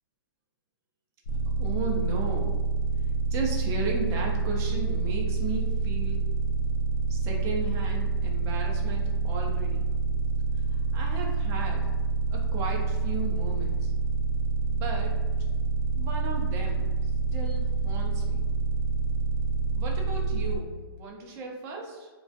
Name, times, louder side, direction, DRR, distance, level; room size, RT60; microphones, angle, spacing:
sound 1, 1.3-20.6, right 5 dB, 55° left, 0.6 m, -27 dB
voice 1, 1.6-2.6 3.3-6.2 7.1-9.9 10.7-11.9 12.3-13.9 14.7-15.2 16.0-18.4 19.7-22.1, right 3 dB, 25° right, 0 dB, 0.5 m, -35 dB
2.3 x 2.2 x 2.6 m, 1.3 s
hypercardioid pair, 145°, 12 cm